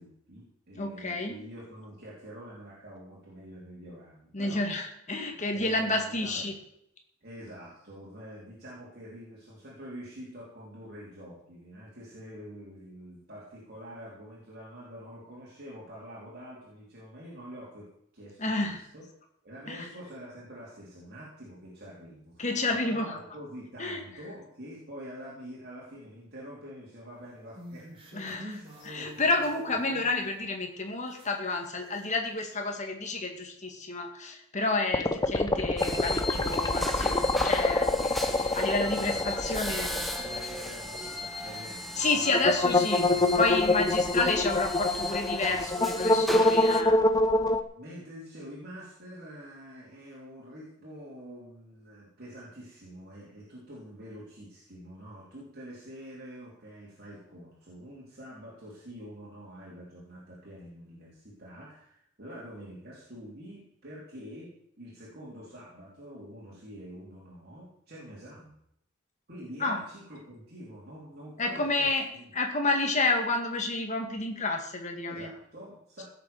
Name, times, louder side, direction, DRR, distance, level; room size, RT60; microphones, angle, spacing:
voice 1, 0.0-4.6 5.3-6.5 7.2-17.9 18.1-19.0 19.4-29.2 39.0-42.6 43.1-44.2 45.5-45.7 47.7-64.5 64.8-68.5 69.3-72.3 75.0-76.0, equal, 50° right, -6 dB, 3.6 m, -46 dB
voice 2, 0.8-1.3 4.3-6.5 18.4-18.8 19.7-19.9 22.4-23.2 23.8-24.0 28.1-39.9 42.0-43.0 43.3-47.0 69.6-69.8 71.4-72.1 72.3-75.3, left 2 dB, 35° left, 3 dB, 2.1 m, -30 dB
sound 1, 27.2-30.4 30.9-32.1 32.4-32.5, equal, 25° right, 3.0 m, -47 dB
sound 2, 34.9-40.7 40.9-41.0 42.3-47.6, left 2 dB, 20° left, 0.8 m, -26 dB
sound 3, 35.8-46.8, left 1 dB, ahead, 1.3 m, -36 dB
16.5 x 7.0 x 7.0 m, 0.75 s
head